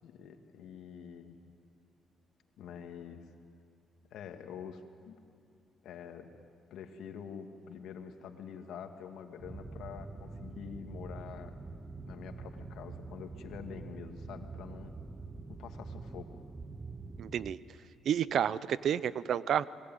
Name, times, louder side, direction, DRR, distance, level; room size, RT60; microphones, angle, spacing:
voice 1, 0.0-1.4 2.6-3.2 4.1-5.2 5.8-6.3 6.7-11.6 12.0-14.9 15.5-16.4, left 7 dB, 80° left, 5 dB, 2.1 m, -46 dB
sound 1, 9.4-17.6, right 3 dB, 25° right, 1.1 m, -45 dB
voice 2, 17.2-17.6 18.0-19.7, right 9 dB, 65° right, 17 dB, 0.7 m, -30 dB
27.0 x 21.5 x 9.3 m, 2.3 s
cardioid pair, 90°, 0 cm